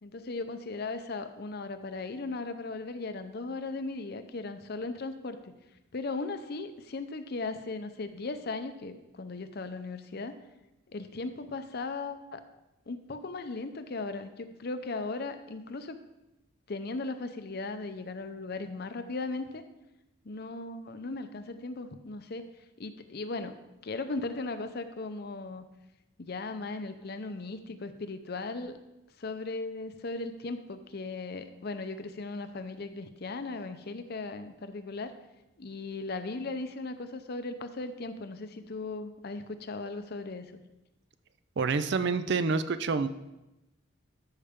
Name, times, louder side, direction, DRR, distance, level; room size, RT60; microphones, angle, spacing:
voice 1, 0.0-5.5 5.9-10.4 10.9-12.4 12.9-16.0 16.7-19.6 20.2-22.4 22.8-23.6 23.8-25.6 26.2-28.8 29.2-35.1 35.6-40.6, left 3 dB, 50° left, 9 dB, 0.6 m, -37 dB
voice 2, 41.6-43.1, right 4 dB, 60° right, 13 dB, 0.4 m, -27 dB
13.5 x 5.6 x 3.6 m, 0.95 s
head